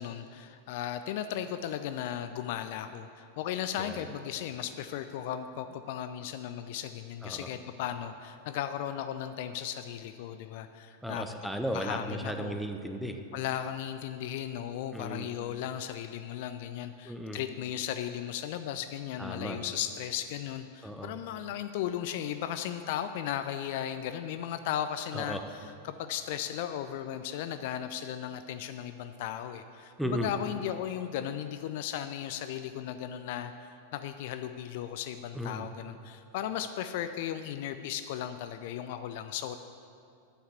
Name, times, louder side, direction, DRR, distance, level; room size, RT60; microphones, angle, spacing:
voice 1, 0.0-11.3 11.7-12.6 13.3-39.6, left 10 dB, 50° left, 10 dB, 0.4 m, -36 dB
voice 2, 11.0-13.2 14.9-15.3 17.0-17.4 19.2-19.6 20.8-21.1 25.1-25.4 30.0-30.3 35.3-35.7, equal, ahead, 5 dB, 0.9 m, -35 dB
9.0 x 7.1 x 8.4 m, 2.5 s
figure-of-eight pair, 90°, 0 cm